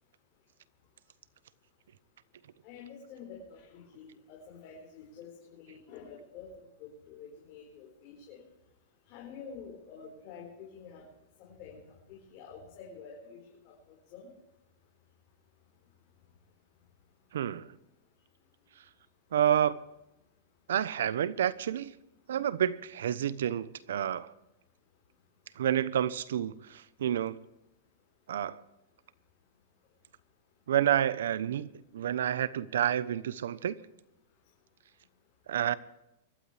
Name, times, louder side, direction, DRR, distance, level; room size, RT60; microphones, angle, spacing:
voice 1, 2.6-8.4 9.1-11.0 11.4-11.8 12.1-14.3, left 6 dB, 40° left, 4.8 m, -48 dB
voice 2, 17.3-17.8 19.3-19.8 20.7-21.9 22.3-24.3 25.6-27.4 28.3-28.6 30.7-33.8 35.5-35.7, right 10 dB, 80° right, 0.9 m, -29 dB
24.5 x 12.5 x 3.4 m
supercardioid pair, 145°, 0 cm